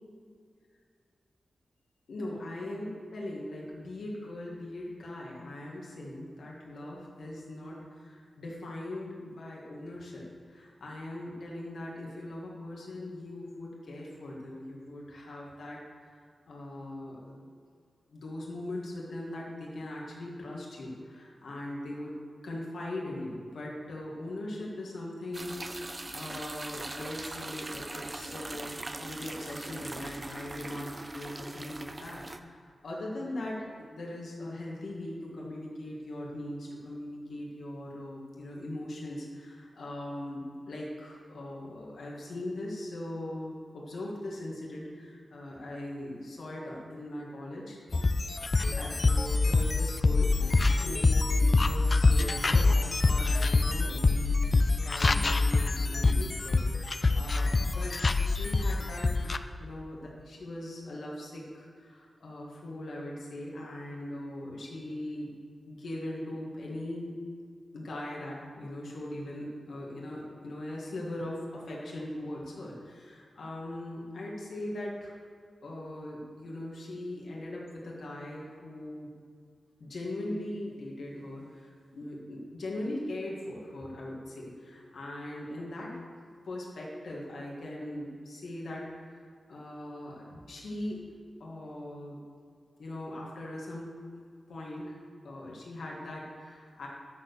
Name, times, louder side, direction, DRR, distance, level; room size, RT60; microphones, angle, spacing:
voice 1, 2.1-17.4 18.1-22.2 22.4-47.8 48.6-54.5 54.8-59.3 59.6-65.3 65.7-67.2 67.7-75.2 75.6-79.1 79.8-85.9 86.4-91.1 91.4-92.2 92.8-94.0 94.5-95.0 95.2-96.9, left 1 dB, 80° left, -3 dB, 2.0 m, -40 dB
sound 1, 25.3-32.4, right 2 dB, 20° right, 0.5 m, -41 dB
sound 2, 47.9-59.4, left 3 dB, 35° left, 0.4 m, -25 dB
11.0 x 4.7 x 6.9 m, 2.2 s
wide cardioid pair, 125°, 0 cm